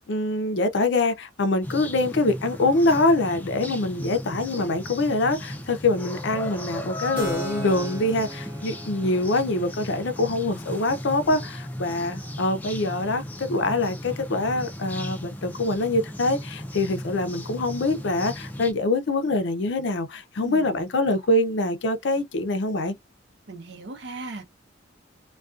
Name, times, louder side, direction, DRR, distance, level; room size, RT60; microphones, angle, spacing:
voice 1, 0.1-23.0, left 2 dB, 65° left, 0.5 m, -24 dB
sound 1, 1.6-18.7, left 1 dB, 10° left, 0.4 m, -36 dB
Keyboard (musical), 7.2-14.5, right 1 dB, 10° right, 0.8 m, -41 dB
voice 2, 20.4-20.8 23.5-24.4, right 2 dB, 60° right, 0.6 m, -38 dB
2.4 x 2.2 x 2.4 m
head